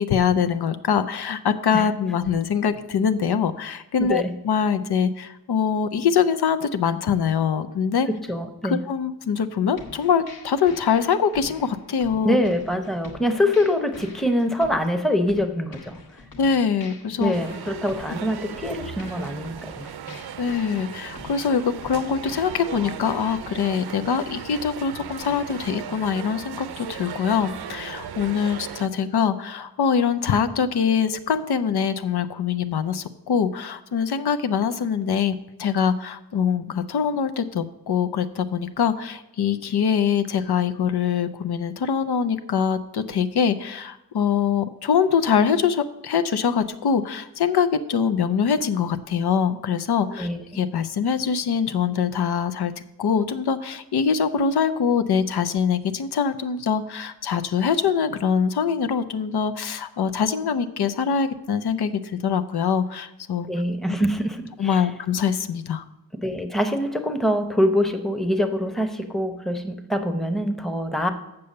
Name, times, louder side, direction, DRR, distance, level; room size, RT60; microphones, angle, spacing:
voice 1, 0.0-8.1 8.6-12.4 16.4-17.3 20.4-50.3 50.5-52.7 53.0-63.5 64.6-65.8, left 7 dB, 85° left, 10 dB, 0.6 m, -23 dB
voice 2, 4.0-4.4 8.1-8.8 12.2-16.0 17.2-20.2 50.1-50.6 63.5-64.8 66.2-71.1, left 1 dB, ahead, 7 dB, 0.8 m, -24 dB
sound 1, 9.8-23.1, left 3 dB, 65° left, 1.4 m, -45 dB
sound 2, 17.3-28.9, right 8 dB, 80° right, 0.6 m, -37 dB
6.9 x 6.8 x 6.6 m, 0.94 s
wide cardioid pair, 105°, 38 cm